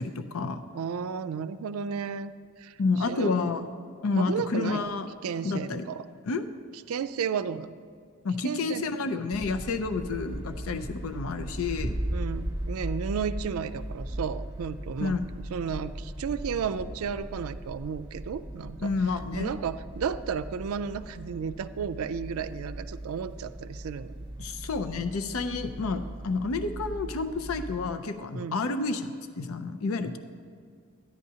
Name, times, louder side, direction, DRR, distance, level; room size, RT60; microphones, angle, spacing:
voice 1, 0.0-0.6 2.8-3.7 4.0-5.1 5.4-5.8 6.3-6.5 8.2-12.0 15.0-15.2 18.8-19.5 24.4-30.2, left 3 dB, 80° left, 8 dB, 0.5 m, -30 dB
voice 2, 0.7-2.3 2.6-2.8 3.1-3.3 4.2-4.9 5.2-6.1 6.9-7.8 8.4-8.8 12.1-18.9 19.3-24.2 28.3-28.6, right 6 dB, 90° right, 12 dB, 0.4 m, -33 dB
sound 1, 9.3-27.9, right 1 dB, 25° right, 1.0 m, -38 dB
14.0 x 10.0 x 2.8 m, 2.2 s
head